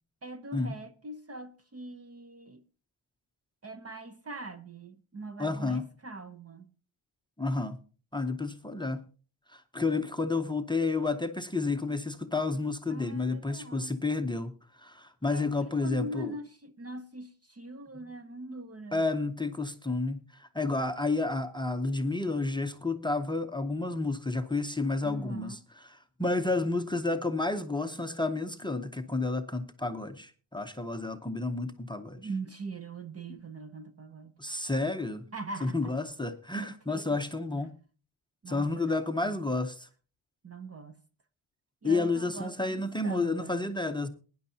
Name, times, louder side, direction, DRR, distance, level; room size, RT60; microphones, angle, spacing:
voice 1, 0.2-2.6 3.6-6.7 12.9-13.9 15.3-19.0 25.0-25.7 32.2-34.3 35.3-35.8 36.5-37.2 38.4-39.4 40.4-41.0 41.8-43.6, right 2 dB, 30° right, 0.7 m, -42 dB
voice 2, 5.4-5.9 7.4-7.8 8.1-9.0 9.5-16.3 18.9-25.6 25.8-32.2 34.4-35.3 35.6-37.7 38.5-39.9 41.8-44.1, left 3 dB, 10° left, 0.6 m, -31 dB
21.5 x 10.0 x 2.7 m
wide cardioid pair, 175°, 49 cm